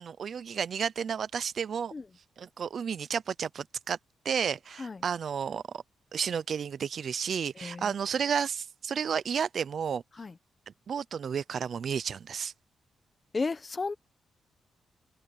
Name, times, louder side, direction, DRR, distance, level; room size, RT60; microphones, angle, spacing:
voice 1, 0.0-1.9 2.4-4.0 4.2-5.8 6.1-10.0 10.9-12.5, right 7 dB, 55° right, 0.6 m, -32 dB
voice 2, 7.6-7.9 10.2-10.3 13.3-13.9, left 4 dB, 30° left, 1.2 m, -33 dB
cardioid pair, 115°, 0 cm